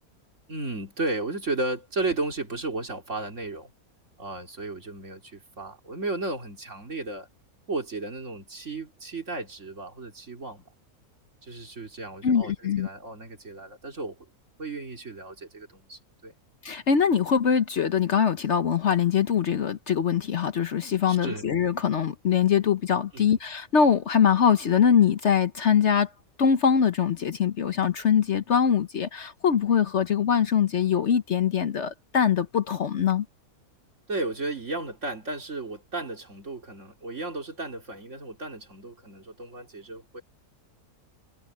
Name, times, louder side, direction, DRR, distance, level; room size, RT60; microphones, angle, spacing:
voice 1, 0.5-3.7 4.2-7.3 7.7-10.6 11.4-14.2 14.6-16.3 21.1-21.4 23.1-23.4 34.1-40.2, right 2 dB, 55° right, 3.6 m, -34 dB
voice 2, 12.2-12.9 16.6-26.1 26.4-33.3, left 7 dB, 55° left, 1.1 m, -23 dB
omnidirectional pair, 1.5 m